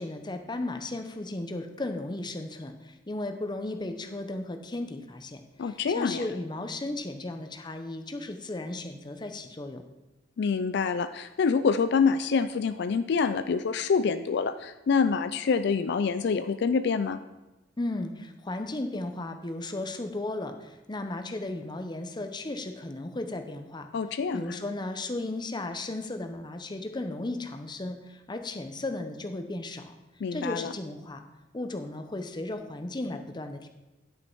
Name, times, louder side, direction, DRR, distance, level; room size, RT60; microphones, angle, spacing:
voice 1, 0.0-9.9 17.8-23.9 24.3-29.9 30.3-31.2 31.5-33.7, left 2 dB, 25° left, 7 dB, 0.7 m, -35 dB
voice 2, 5.6-6.3 10.4-17.2 23.9-24.6 30.2-30.7, left 5 dB, 65° left, 10 dB, 0.4 m, -26 dB
10.5 x 6.4 x 4.6 m, 1.0 s
head